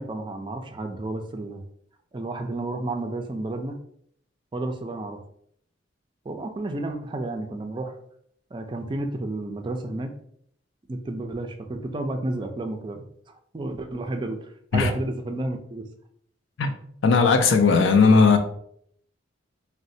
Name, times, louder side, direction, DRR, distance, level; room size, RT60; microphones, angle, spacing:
voice 1, 0.0-1.6 2.1-3.8 4.5-5.2 6.3-8.0 8.5-10.1 10.9-13.0 13.5-15.8, right 2 dB, 25° right, 0.3 m, -31 dB
voice 2, 17.0-18.4, left 4 dB, 70° left, 0.4 m, -17 dB
4.0 x 2.1 x 2.6 m
head